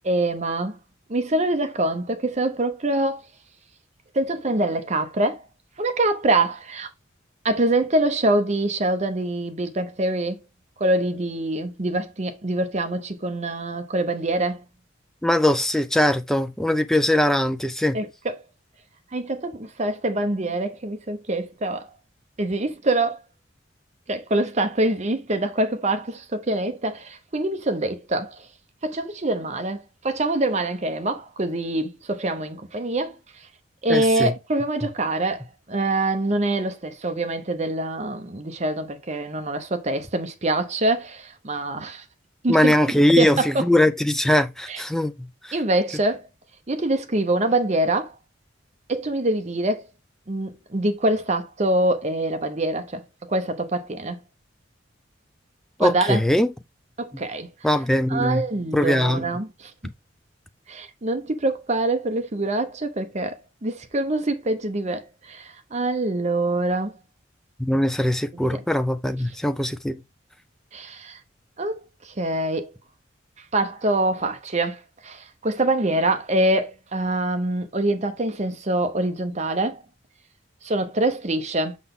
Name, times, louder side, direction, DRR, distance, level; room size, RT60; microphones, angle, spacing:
voice 1, 0.0-0.8 1.1-3.2 4.1-5.4 5.8-6.9 7.4-10.4 10.8-14.6 17.9-18.4 19.1-21.9 22.4-23.2 24.1-28.4 28.8-33.2 33.8-35.4 35.7-42.0 42.4-42.7 43.2-43.5 44.7-44.8 45.5-46.2 46.7-48.1 48.9-49.8 50.3-53.0 53.3-54.2 55.8-56.2 57.0-57.5 58.1-59.7 60.7-67.0 68.3-68.6 70.7-71.2 71.6-71.8 72.0-72.7 73.5-79.8 80.6-81.8, right 2 dB, 35° right, 0.8 m, -25 dB
voice 2, 15.2-18.0 33.9-34.3 42.5-45.6 55.8-56.5 57.6-58.4 58.7-59.3 67.6-70.0, left 1 dB, ahead, 0.4 m, -21 dB
6.0 x 5.7 x 3.7 m
head